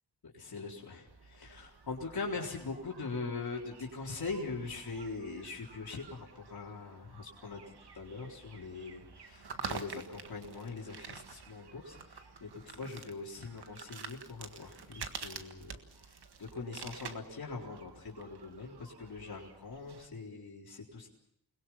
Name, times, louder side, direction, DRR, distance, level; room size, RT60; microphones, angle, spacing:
voice 1, 0.3-7.6 7.9-21.1, left 4 dB, 70° left, -2 dB, 4.2 m, -42 dB
sound 1, 1.1-20.1, right 5 dB, 90° right, 1.7 m, -49 dB
29.5 x 21.0 x 5.8 m, 0.80 s
wide cardioid pair, 125°, 38 cm